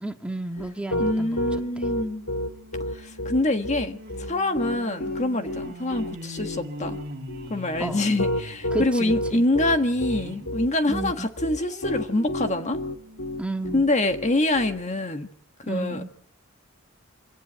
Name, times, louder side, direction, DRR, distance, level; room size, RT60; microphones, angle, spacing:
voice 1, 0.0-1.9 7.8-8.0 8.7-9.4 10.9-11.3 13.4-13.8 15.7-16.1, right 1 dB, 5° right, 1.7 m, -32 dB
Piano, 0.6-14.8, left 1 dB, 75° left, 2.2 m, -30 dB
sound 1, 0.9-10.5 11.0-14.0 14.6-14.7 14.9-15.0, equal, 45° right, 2.7 m, -42 dB
voice 2, 1.0-2.2 2.9-4.0 4.3-7.0 7.5-12.8 13.7-15.3 15.7-16.1, left 2 dB, 35° left, 1.5 m, -25 dB
25.0 x 18.0 x 9.1 m
head